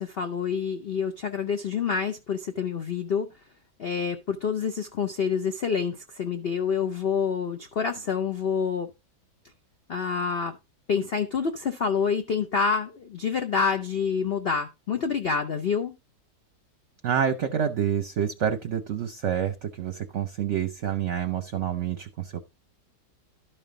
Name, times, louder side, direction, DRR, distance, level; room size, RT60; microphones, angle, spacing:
voice 1, 0.0-3.3 3.8-8.9 9.9-10.6 10.9-15.9, left 6 dB, 55° left, 0.6 m, -27 dB
voice 2, 17.0-22.4, right 8 dB, 55° right, 0.9 m, -28 dB
12.0 x 5.5 x 3.8 m
omnidirectional pair, 1.8 m